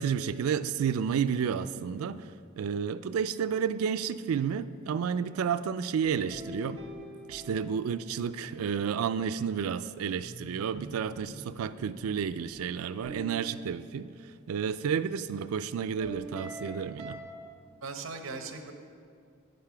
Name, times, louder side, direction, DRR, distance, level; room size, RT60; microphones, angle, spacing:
voice 1, 0.0-2.2 2.6-6.8 7.3-14.1 14.5-17.2, right 7 dB, 85° right, 13 dB, 0.3 m, -31 dB
voice 2, 2.0-2.3 15.3-15.4 17.8-18.7, right 4 dB, 65° right, 5 dB, 0.9 m, -40 dB
sound 1, 6.0-8.9 10.2-14.7 16.0-17.2, equal, 25° right, 1.8 m, -45 dB
9.7 x 6.8 x 5.8 m, 2.3 s
head